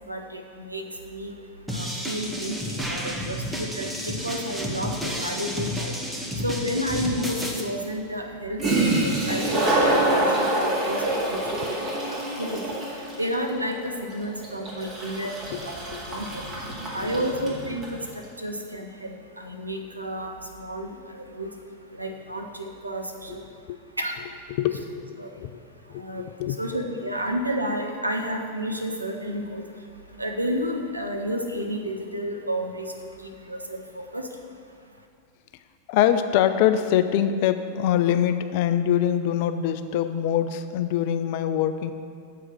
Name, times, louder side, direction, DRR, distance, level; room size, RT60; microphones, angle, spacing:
voice 1, 0.1-1.3 1.7-2.6 2.9-5.9 6.4-8.6 9.0-11.7 12.1-12.6 13.2-15.4 15.6-16.4 16.9-19.1 19.4-20.3 20.6-21.5 21.9-23.4 24.0-24.2 25.2-25.3 26.0-26.2 26.6-29.6 30.2-32.9 33.2-34.2, equal, 85° right, 3 dB, 0.7 m, -31 dB
sound 1, 1.7-7.6, equal, 5° right, 0.9 m, -31 dB
Toilet flush, 8.6-18.0, right 1 dB, 25° right, 2.1 m, -26 dB
voice 2, 15.8-16.2 16.8-17.2 23.3-23.4 23.7-23.8 24.6-25.6 25.9-26.6 35.9-41.9, left 10 dB, 50° left, 10 dB, 0.4 m, -24 dB
7.7 x 4.6 x 6.1 m, 2.2 s
figure-of-eight pair, 90°, 0 cm